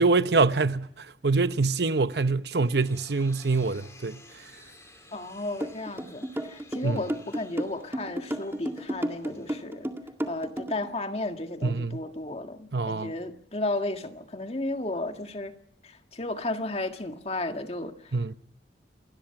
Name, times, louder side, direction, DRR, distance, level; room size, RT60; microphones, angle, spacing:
voice 1, 0.0-4.2 6.8-7.0 11.6-12.0 12.7-13.1 18.1-18.3, right 3 dB, 65° right, 0.9 m, -25 dB
sound 1, 2.3-10.1, left 2 dB, 15° left, 3.8 m, -55 dB
voice 2, 5.1-9.9 10.3-15.5 15.8-17.9, left 2 dB, 35° left, 1.9 m, -33 dB
sound 2, 5.6-10.9, equal, 15° right, 2.0 m, -32 dB
28.0 x 20.5 x 5.9 m
head